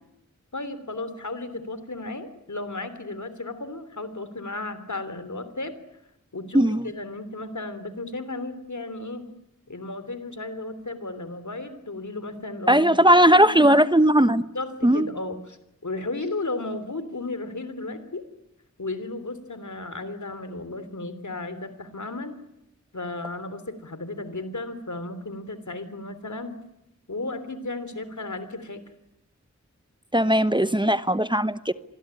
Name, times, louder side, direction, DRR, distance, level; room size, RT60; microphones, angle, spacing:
voice 1, 0.5-5.7 6.3-9.3 9.7-13.0 13.3-13.8 14.5-15.6 15.8-18.2 18.8-22.4 22.9-26.6 27.1-28.8, left 2 dB, 75° left, 12 dB, 3.3 m, -34 dB
voice 2, 6.5-6.9 12.7-14.4 14.8-15.1 30.1-31.7, right 1 dB, 15° right, 13 dB, 1.0 m, -18 dB
26.0 x 20.5 x 9.9 m, 0.86 s
wide cardioid pair, 45°, 30 cm